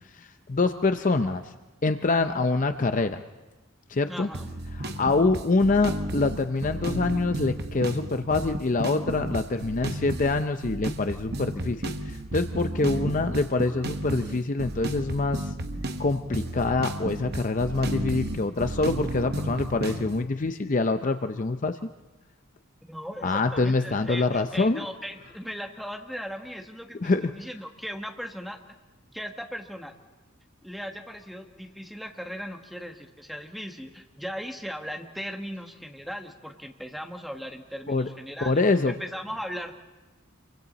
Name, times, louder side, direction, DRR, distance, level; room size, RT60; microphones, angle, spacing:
voice 1, 0.2-1.5 1.8-3.2 3.9-4.3 4.7-15.5 16.0-21.8 23.2-24.8 27.0-27.2 37.9-38.1 38.4-38.9, left 3 dB, 40° left, 8 dB, 0.6 m, -25 dB
voice 2, 4.1-4.5 22.8-28.6 29.1-29.9 30.6-39.7, equal, ahead, 3 dB, 1.3 m, -38 dB
sound 1, 4.3-20.3, right 1 dB, 50° right, 1.0 m, -33 dB
27.5 x 23.5 x 4.1 m, 1.1 s
head